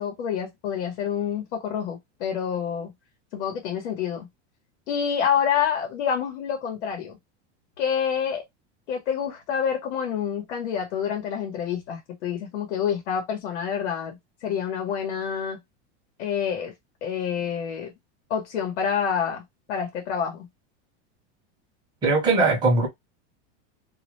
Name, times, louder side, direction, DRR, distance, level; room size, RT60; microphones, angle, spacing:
voice 1, 0.0-2.9 3.3-4.3 4.9-7.2 7.8-8.4 8.9-15.6 16.2-16.7 17.0-17.9 18.3-19.4 19.7-20.5, left 8 dB, 80° left, 1.0 m, -27 dB
voice 2, 22.0-22.9, right 3 dB, 10° right, 0.6 m, -20 dB
2.4 x 2.1 x 2.9 m
supercardioid pair, 170°, 34 cm